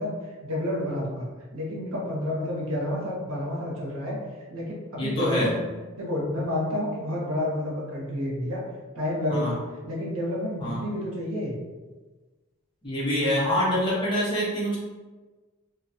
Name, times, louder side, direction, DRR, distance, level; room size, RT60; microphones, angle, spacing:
voice 1, 0.0-4.2 4.5-5.6 5.9-8.6 8.9-11.6, left 1 dB, 85° right, -3 dB, 0.8 m, -30 dB
voice 2, 5.0-5.5 9.3-9.5 10.6-10.8 12.8-14.8, equal, 25° left, -6 dB, 0.7 m, -25 dB
2.6 x 2.2 x 2.7 m, 1.3 s
head